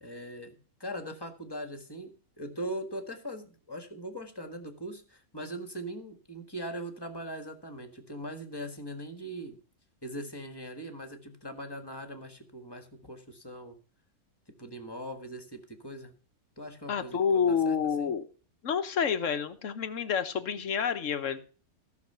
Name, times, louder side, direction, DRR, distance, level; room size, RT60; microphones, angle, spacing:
voice 1, 0.0-9.6 10.0-13.8 14.6-16.2 16.6-18.1, right 1 dB, 15° left, 6 dB, 1.6 m, -41 dB
voice 2, 16.9-18.3 18.6-21.5, left 7 dB, 60° left, 9 dB, 1.3 m, -28 dB
14.5 x 6.5 x 5.7 m, 0.38 s
omnidirectional pair, 1.5 m